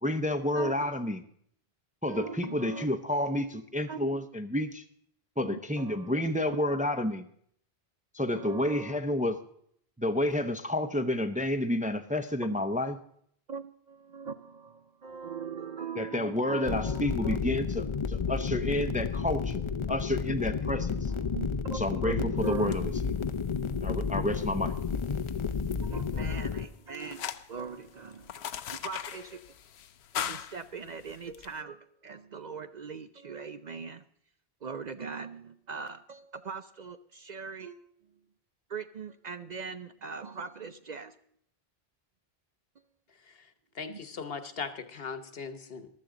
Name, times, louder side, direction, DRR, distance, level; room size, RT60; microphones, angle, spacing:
voice 1, 0.0-1.2 2.0-4.8 5.4-7.2 8.1-9.4 10.0-13.0 16.0-21.1 21.7-23.1 23.8-24.8, left 1 dB, 10° right, 7 dB, 0.6 m, -30 dB
voice 2, 0.5-0.9 2.1-2.9 3.9-4.2 5.4-6.2 8.3-9.0 13.5-17.4 21.1-22.7 25.8-29.5 30.1-34.0 34.6-37.9 38.7-41.2 43.9-44.0, right 5 dB, 50° right, 10 dB, 0.6 m, -41 dB
sound 1, 16.6-26.6, left 5 dB, 35° left, 0.5 m, -31 dB
sound 2, 22.4-31.5, left 9 dB, 85° left, 0.9 m, -42 dB
voice 3, 43.8-45.9, left 5 dB, 70° left, 10 dB, 1.2 m, -38 dB
15.0 x 12.0 x 3.8 m, 0.65 s
omnidirectional pair, 1.1 m